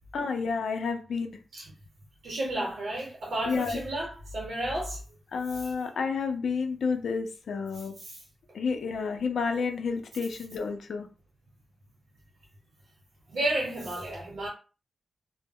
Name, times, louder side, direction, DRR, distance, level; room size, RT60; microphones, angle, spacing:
voice 1, 0.1-1.4 3.5-3.8 5.3-8.0 8.5-11.1, left 5 dB, 75° left, 0.4 m, -30 dB
voice 2, 2.2-5.0 5.6-5.7 8.0-8.2 13.3-14.5, right 1 dB, 60° right, 0.8 m, -32 dB
2.2 x 2.0 x 3.5 m
wide cardioid pair, 170°, 0 cm